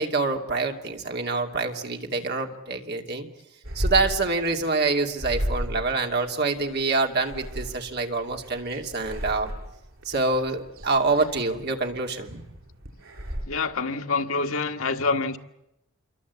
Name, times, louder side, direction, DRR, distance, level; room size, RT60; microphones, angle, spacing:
voice 1, 0.0-3.3 3.7-9.5 10.0-12.4, right 3 dB, 50° right, 3 dB, 2.6 m, -26 dB
sound 1, 3.6-13.4, equal, 75° right, 5.7 m, -35 dB
voice 2, 13.5-15.4, left 4 dB, 90° left, 6 dB, 1.6 m, -26 dB
27.5 x 23.0 x 8.3 m, 0.86 s
head